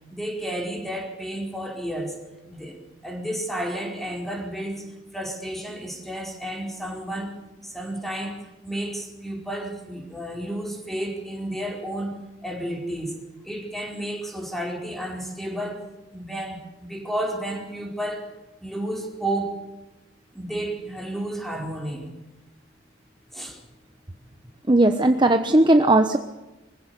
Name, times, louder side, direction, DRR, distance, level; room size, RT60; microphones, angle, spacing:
voice 1, 0.1-2.2 2.5-12.2 12.4-13.1 13.4-15.8 16.1-18.3 18.6-19.6 20.3-22.1 23.3-23.6, right 1 dB, ahead, 1 dB, 4.5 m, -32 dB
voice 2, 24.7-26.2, right 2 dB, 25° right, 7 dB, 1.0 m, -17 dB
24.0 x 15.5 x 8.3 m, 1.1 s
head